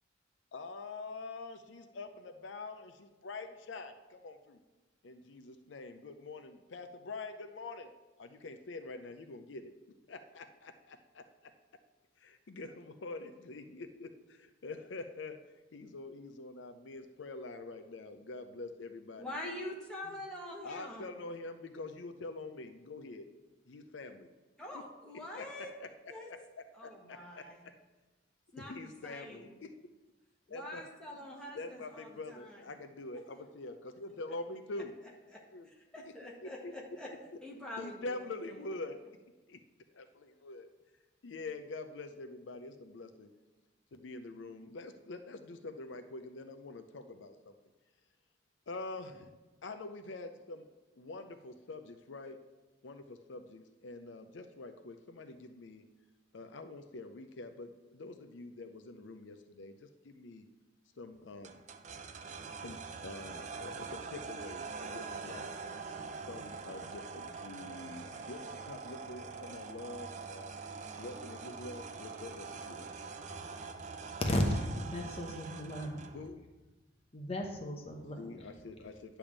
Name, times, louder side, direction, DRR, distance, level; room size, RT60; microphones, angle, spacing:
voice 1, 0.5-4.6 5.0-7.9 8.2-9.7 10.1-11.2 12.2-15.4 15.7-19.3 20.6-23.3 23.7-24.3 25.3-25.9 26.8-27.4 28.6-29.7 30.5-30.8 31.6-34.9 35.5-35.7 36.4-36.7 37.8-39.0 39.5-39.6 39.9-40.7 41.2-43.3 43.9-47.3 48.7-49.3 49.6-50.7 50.9-52.4 52.8-55.8 56.3-59.7 60.0-60.5 61.0-61.6 62.6-65.5 66.3-70.5 71.0-72.9 76.1-76.4 78.2-79.2, left 3 dB, 75° left, 7 dB, 0.5 m, -45 dB
voice 2, 19.2-21.1 24.6-25.7 26.1-26.3 26.7-27.6 28.5-28.8 29.0-29.5 30.5-32.6 35.3-37.1 37.4-38.7, left 1 dB, 5° left, -4 dB, 1.6 m, -45 dB
sound 1, 61.4-76.3, right 4 dB, 40° right, 0.5 m, -44 dB
voice 3, 74.2-76.0 77.1-78.5, left 1 dB, 30° left, 2 dB, 0.9 m, -35 dB
10.0 x 3.5 x 7.2 m, 1.1 s
head